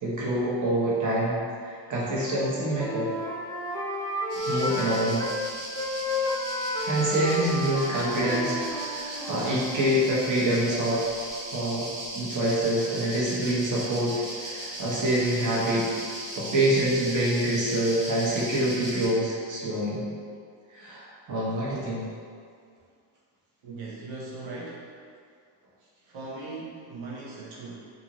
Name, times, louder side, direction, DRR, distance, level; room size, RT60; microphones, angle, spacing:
voice 1, 0.0-3.1 4.4-5.2 6.8-11.1 11.5-15.9 16.4-20.0 20.7-22.0, right 1 dB, 40° right, -7 dB, 0.9 m, -26 dB
Wind instrument woodwind instrument, 1.9-5.4 5.8-10.0, left 1 dB, 10° left, 0.4 m, -32 dB
sound 1, 4.3-19.1, right 1 dB, 85° right, 1.1 m, -38 dB
voice 2, 23.6-24.9 26.0-27.9, right 3 dB, 70° right, -5 dB, 0.7 m, -39 dB
2.6 x 2.6 x 2.8 m, 2.2 s
cardioid pair, 90°, 49 cm